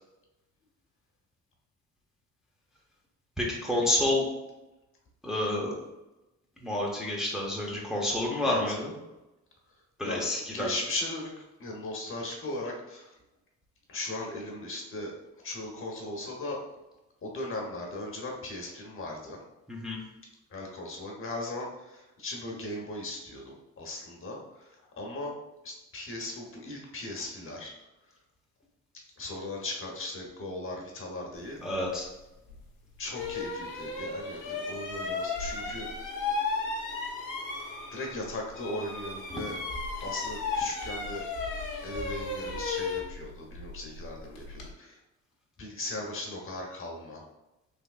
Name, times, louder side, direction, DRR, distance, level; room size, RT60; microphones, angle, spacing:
voice 1, 3.4-4.3 5.2-5.7 6.6-8.9 10.0-10.7 19.7-20.0 31.6-32.1 39.3-39.4, left 1 dB, ahead, -4 dB, 0.7 m, -29 dB
voice 2, 8.4-8.8 10.0-10.3 10.5-11.3 11.6-13.1 13.9-15.1 15.4-16.6 17.2-19.4 20.5-25.3 25.6-27.7 29.2-31.6 33.0-35.9 37.6-39.5 40.0-41.2 41.5-45.0 45.6-47.2, left 2 dB, 45° left, -1 dB, 1.0 m, -38 dB
sound 1, 32.5-32.6 33.1-38.3 38.5-44.7, left 4 dB, 80° left, 0.9 m, -34 dB
3.5 x 3.1 x 2.4 m, 0.97 s
cardioid pair, 90°, 30 cm